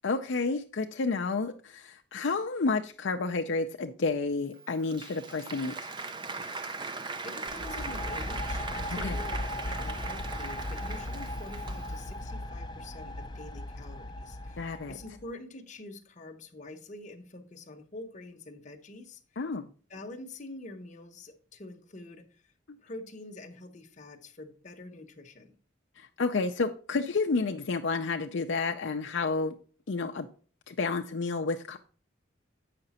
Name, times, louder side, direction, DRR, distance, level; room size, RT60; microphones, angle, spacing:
voice 1, 0.0-5.7 8.9-9.2 14.6-14.9 19.4-19.7 26.0-29.5 29.9-30.3 30.7-31.8, left 3 dB, 65° left, 0.5 m, -30 dB
Applause, 4.5-12.1, right 3 dB, 25° right, 0.5 m, -39 dB
voice 2, 7.2-19.2 19.9-22.4 22.8-25.5, left 2 dB, 40° left, 0.9 m, -46 dB
sound 1, 7.5-15.2, left 1 dB, 20° left, 0.6 m, -37 dB
7.8 x 5.8 x 4.1 m
head